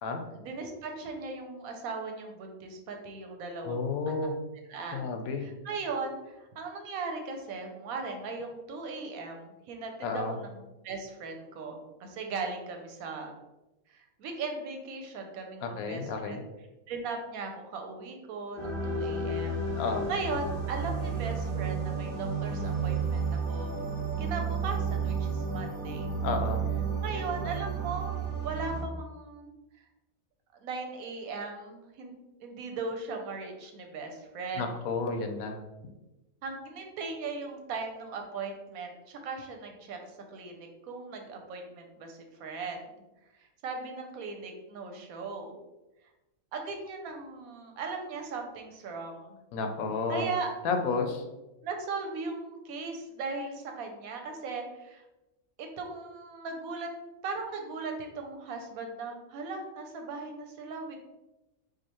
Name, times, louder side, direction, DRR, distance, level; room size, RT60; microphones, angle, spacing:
voice 1, 0.3-4.3 4.7-5.1 5.4-13.4 13.9-16.4 16.9-19.6 20.1-23.8 24.2-26.1 27.0-29.5 30.6-32.1 32.4-34.6 36.4-40.0 40.3-42.8 43.6-45.6 46.5-49.3 50.1-50.5 51.6-55.0 55.6-56.9 57.2-61.0, right 4 dB, 80° right, 3 dB, 1.1 m, -38 dB
voice 2, 3.6-4.3 4.9-5.4 10.0-10.4 15.6-16.4 19.8-20.1 26.2-26.7 34.6-35.6 49.5-50.3 50.6-51.2, left 4 dB, 85° left, 5 dB, 1.1 m, -31 dB
sound 1, 18.6-28.8, right 4 dB, 40° right, 1.2 m, -32 dB
4.8 x 2.4 x 3.0 m, 1.0 s
omnidirectional pair, 1.5 m